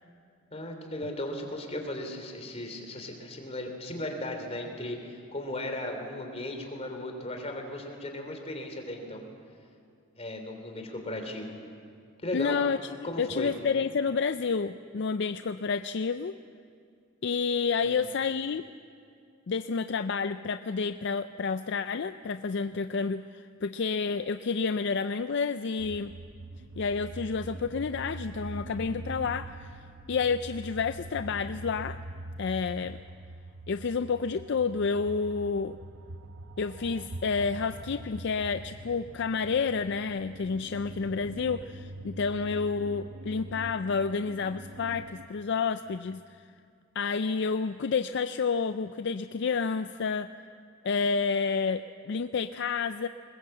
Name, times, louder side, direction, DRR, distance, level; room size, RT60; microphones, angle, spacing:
voice 1, 0.5-9.2 10.2-11.5 12.2-12.6 13.0-13.5, left 1 dB, 30° left, 4 dB, 3.2 m, -36 dB
voice 2, 12.3-16.3 17.2-18.6 19.5-26.1 26.8-29.7 30.1-32.0 32.4-33.0 33.7-35.8 36.6-46.4 46.9-50.3 50.8-53.1, left 5 dB, 60° left, 11 dB, 0.4 m, -30 dB
sound 1, 25.8-45.3, right 2 dB, 70° right, 0.9 m, -43 dB
21.5 x 21.0 x 7.8 m, 2.3 s
head